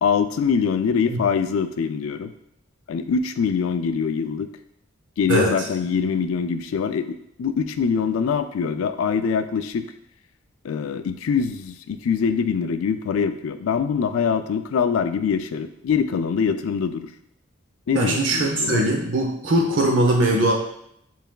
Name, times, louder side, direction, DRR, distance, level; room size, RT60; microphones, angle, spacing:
voice 1, 0.0-2.3 2.9-4.5 5.2-9.9 10.6-17.1 17.9-18.8, left 6 dB, 80° left, 10 dB, 0.4 m, -23 dB
voice 2, 17.9-20.5, right 1 dB, 65° right, 1 dB, 0.7 m, -20 dB
6.9 x 3.3 x 2.3 m, 0.75 s
head